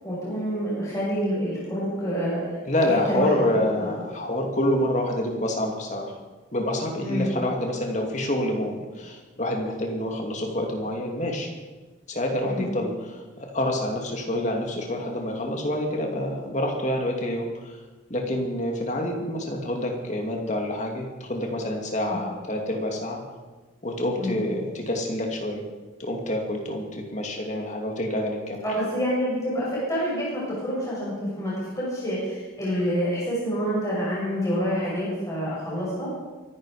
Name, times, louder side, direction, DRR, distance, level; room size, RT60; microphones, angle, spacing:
voice 1, 0.0-2.4 2.8-3.9 7.0-7.3 12.4-12.7 22.0-22.2 24.2-24.4 28.6-36.1, equal, 15° left, -7 dB, 6.5 m, -27 dB
voice 2, 2.6-6.1 6.5-11.5 12.1-17.8 18.1-23.2 23.8-25.6 26.0-28.6, left 1 dB, 35° left, 1 dB, 2.7 m, -27 dB
23.0 x 11.5 x 5.1 m, 1.3 s
head